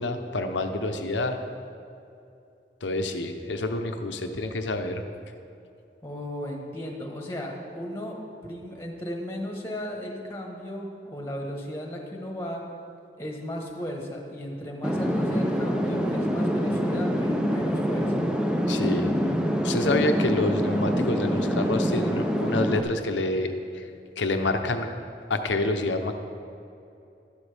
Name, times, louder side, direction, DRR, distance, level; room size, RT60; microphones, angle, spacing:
voice 1, 0.0-1.4 2.8-5.0 18.7-19.1 19.6-23.8 24.2-24.9 25.3-26.1, left 2 dB, 90° left, 6 dB, 0.8 m, -27 dB
voice 2, 6.0-12.6 13.2-18.2, equal, 15° left, 0 dB, 1.2 m, -35 dB
sound 1, 14.8-22.8, equal, 5° right, 0.5 m, -25 dB
12.0 x 11.5 x 3.4 m, 2.7 s
head